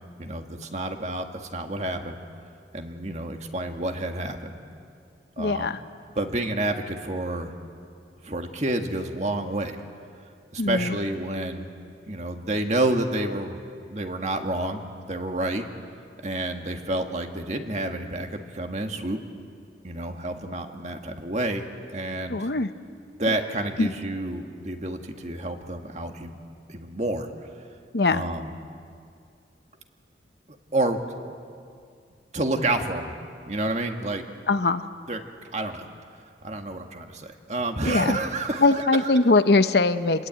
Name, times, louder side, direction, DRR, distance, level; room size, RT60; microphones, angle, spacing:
voice 1, 0.2-1.3 1.5-2.2 2.7-4.6 5.4-5.7 6.1-7.5 8.2-9.8 10.5-11.7 12.1-13.6 13.9-14.8 15.1-15.6 16.2-19.2 19.8-21.6 21.9-22.4 23.2-26.4 26.7-27.5 28.1-28.5 30.7-31.0 32.3-33.2 33.5-34.2 35.1-35.2 35.5-35.9 36.4-39.1, right 2 dB, 40° right, 4 dB, 1.8 m, -29 dB
voice 2, 5.4-5.8 10.6-11.0 22.3-22.7 23.8-23.9 27.9-28.2 34.5-34.8 37.9-38.2 38.6-40.3, left 3 dB, 65° left, 10 dB, 0.9 m, -21 dB
28.5 x 21.5 x 9.0 m, 2.3 s
head